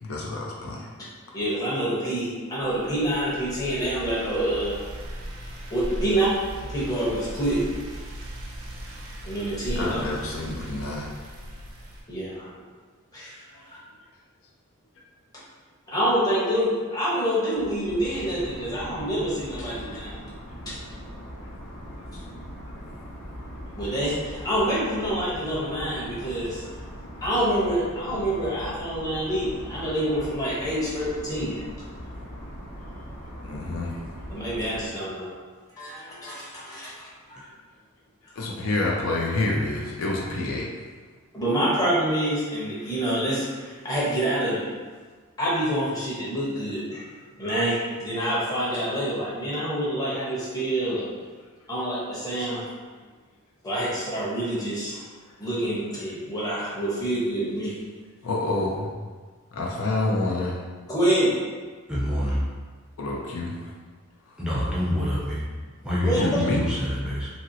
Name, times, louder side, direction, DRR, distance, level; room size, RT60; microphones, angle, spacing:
voice 1, 0.0-0.9 9.8-11.1 33.4-33.9 38.4-40.7 58.2-58.9 59.5-60.5 63.0-63.5 66.2-66.6, left 2 dB, 70° left, -2 dB, 0.5 m, -27 dB
voice 2, 1.3-4.9 5.7-6.3 6.6-7.7 9.3-10.0 12.1-12.5 13.1-13.8 15.9-20.1 23.8-26.7 27.2-31.6 34.3-35.3 35.8-37.1 38.2-38.3 41.3-44.7 45.4-47.1 47.4-51.1 51.7-52.6 53.6-55.0 55.4-57.7 60.9-61.3 66.0-66.2, right 1 dB, 15° left, -8 dB, 0.8 m, -27 dB
sound 1, 2.6-12.0, equal, 75° right, 0.5 m, -38 dB
sound 2, 17.5-34.9, equal, 45° left, 0.9 m, -40 dB
voice 3, 61.9-62.5 64.4-65.4 65.8-67.3, equal, 5° right, -9 dB, 0.5 m, -26 dB
2.9 x 2.7 x 2.7 m, 1.5 s
head